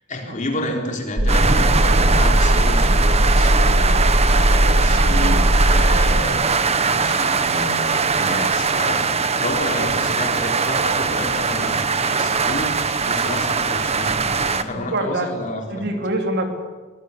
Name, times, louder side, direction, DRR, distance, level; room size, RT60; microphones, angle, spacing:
voice 1, 0.1-16.0, left 1 dB, 40° left, 2 dB, 4.0 m, -30 dB
sound 1, 1.2-6.2, equal, 70° right, 2.0 m, -18 dB
sound 2, 1.3-14.6, right 4 dB, 30° right, 1.1 m, -21 dB
voice 2, 14.4-15.3 15.7-16.5, right 1 dB, 55° right, 4 dB, 3.0 m, -25 dB
22.5 x 20.0 x 8.4 m, 1.4 s
head